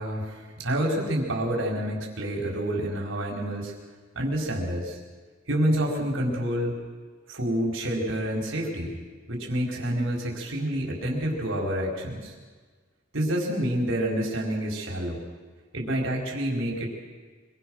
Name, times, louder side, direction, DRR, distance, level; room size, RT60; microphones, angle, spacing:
voice 1, 0.0-3.7 4.1-5.0 5.5-6.7 7.3-9.0 9.3-12.3 13.1-15.2 15.7-16.9, right 1 dB, 80° right, 0 dB, 4.9 m, -28 dB
25.5 x 22.5 x 6.4 m, 1.4 s
head